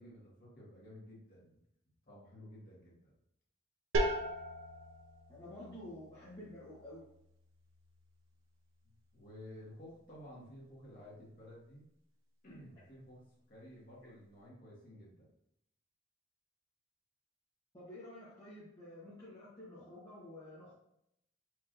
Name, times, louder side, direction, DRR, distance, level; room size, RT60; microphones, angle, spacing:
voice 1, 0.0-1.6 2.0-3.1 9.1-11.9 12.4-15.3, equal, 40° left, -6 dB, 1.5 m, -53 dB
sound 1, 3.9-9.5, right 1 dB, 70° right, 0.6 m, -40 dB
voice 2, 5.3-7.0 14.0-14.1 17.7-20.7, left 1 dB, 20° left, -9 dB, 0.9 m, -50 dB
4.6 x 3.0 x 2.5 m, 0.76 s
head